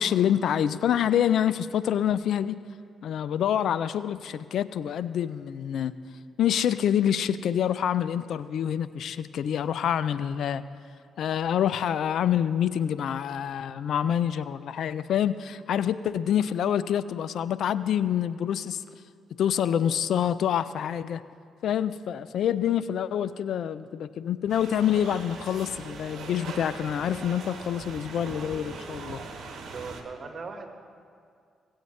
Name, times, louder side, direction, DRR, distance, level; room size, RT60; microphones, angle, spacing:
voice 1, 0.0-2.6 3.0-6.0 6.4-10.6 11.2-18.8 19.4-21.2 21.6-29.2, left 9 dB, 70° left, 15 dB, 0.3 m, -26 dB
sound 1, 24.5-30.0, right 4 dB, 70° right, 1.1 m, -40 dB
voice 2, 29.5-30.7, right 4 dB, 55° right, 4 dB, 1.4 m, -39 dB
17.5 x 8.0 x 3.2 m, 2.2 s
supercardioid pair, 50°, 0 cm